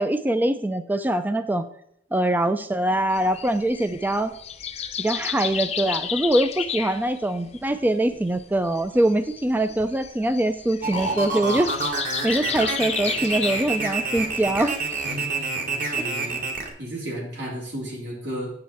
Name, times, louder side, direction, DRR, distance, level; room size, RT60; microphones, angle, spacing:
voice 1, 0.0-1.6 2.1-4.3 5.0-11.7 12.2-14.7, right 1 dB, 10° right, 11 dB, 0.3 m, -23 dB
sound 1, 3.1-15.2, left 8 dB, 40° left, 0.6 m, -33 dB
sound 2, 10.8-16.7, right 3 dB, 50° right, 1.5 m, -27 dB
voice 2, 15.0-16.4 16.8-18.5, equal, 85° right, -3 dB, 3.5 m, -34 dB
8.7 x 7.2 x 4.3 m, 0.72 s
head